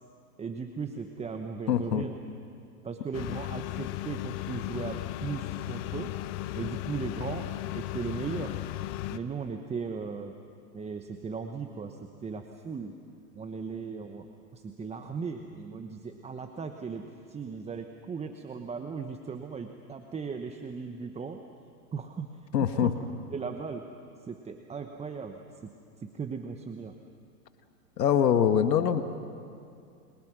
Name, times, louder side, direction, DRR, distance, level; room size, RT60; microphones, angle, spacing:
voice 1, 0.4-2.1 2.8-6.1 6.5-7.5 7.7-8.6 9.1-10.3 10.7-13.0 13.3-21.4 21.9-22.9 23.3-23.9 24.2-25.7 26.0-26.9, right 5 dB, 15° right, 6 dB, 1.0 m, -37 dB
voice 2, 1.7-2.1 22.5-22.9 28.0-29.0, left 9 dB, 80° left, 9 dB, 1.5 m, -23 dB
computer lab, 3.1-9.2, left 16 dB, 45° left, 1.0 m, -36 dB
29.0 x 22.5 x 6.2 m, 2.5 s
hypercardioid pair, 110°, 49 cm